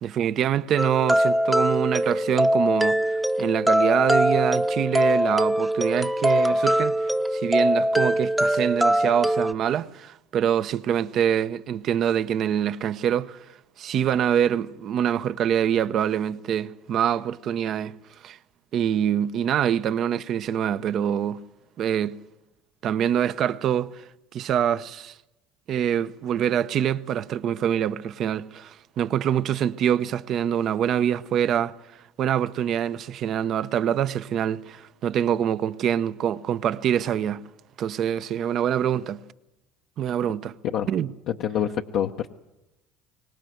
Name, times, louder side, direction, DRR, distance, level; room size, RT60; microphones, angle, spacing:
voice 1, 0.0-13.4 13.8-17.9 18.2-18.4 18.7-21.4 21.8-22.1 22.8-24.0 24.3-25.1 25.7-31.7 32.2-37.4 37.8-39.2 40.0-40.5 40.9-41.1, right 9 dB, 55° right, 0.8 m, -25 dB
sound 1, 0.8-9.5, equal, 5° right, 0.9 m, -22 dB
voice 2, 41.3-42.3, left 9 dB, 65° left, 0.9 m, -26 dB
23.5 x 18.5 x 7.9 m
hypercardioid pair, 75°, 0 cm